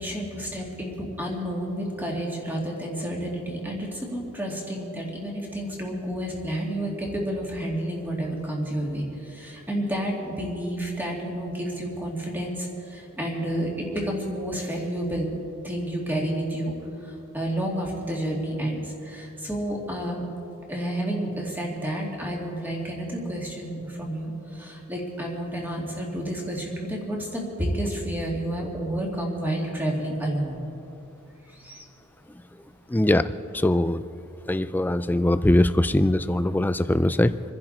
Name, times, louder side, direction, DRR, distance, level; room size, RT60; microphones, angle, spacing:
voice 1, 0.0-15.4 15.6-16.7 17.0-20.3 20.7-30.6 31.5-31.8, right 1 dB, 10° right, -2 dB, 2.5 m, -30 dB
voice 2, 32.9-34.1 34.5-37.4, left 1 dB, 10° left, 12 dB, 0.3 m, -22 dB
27.5 x 10.5 x 4.3 m, 2.9 s
head